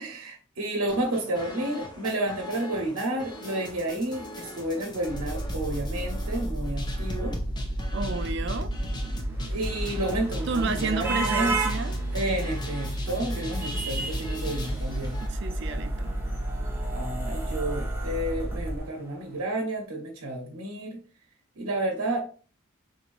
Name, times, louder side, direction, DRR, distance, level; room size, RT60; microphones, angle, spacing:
voice 1, 0.0-7.3 9.5-11.5 12.1-15.2 16.9-21.0 21.6-22.2, right 1 dB, 90° right, 0.8 m, -31 dB
sound 1, 0.9-15.3, left 1 dB, 20° left, 0.4 m, -40 dB
sound 2, 5.1-18.8, right 1 dB, 30° right, 1.1 m, -32 dB
voice 2, 7.9-8.7 10.5-12.0 15.2-16.1, right 4 dB, 55° right, 0.4 m, -31 dB
sound 3, 8.9-19.2, right 3 dB, 10° right, 0.8 m, -36 dB
4.0 x 3.2 x 2.5 m
head